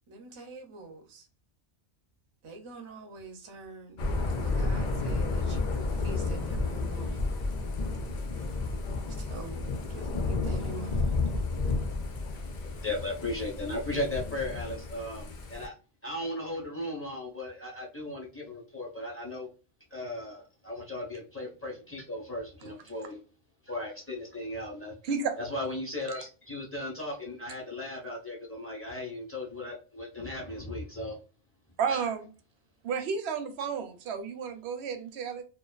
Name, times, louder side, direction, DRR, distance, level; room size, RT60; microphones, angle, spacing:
voice 1, 0.1-1.3 2.4-4.0 4.4-7.2 9.1-11.2, right 3 dB, 35° right, 0.5 m, -45 dB
Thunder / Rain, 4.0-15.7, left 3 dB, 55° left, 0.5 m, -31 dB
voice 2, 12.3-15.7 16.0-19.5 19.9-23.2 23.6-24.9 25.4-31.1 31.9-32.0, left 1 dB, 15° left, 0.7 m, -36 dB
voice 3, 25.0-25.4 31.8-32.3 32.8-35.4, right 6 dB, 70° right, 0.8 m, -32 dB
2.4 x 2.2 x 2.2 m
omnidirectional pair, 1.2 m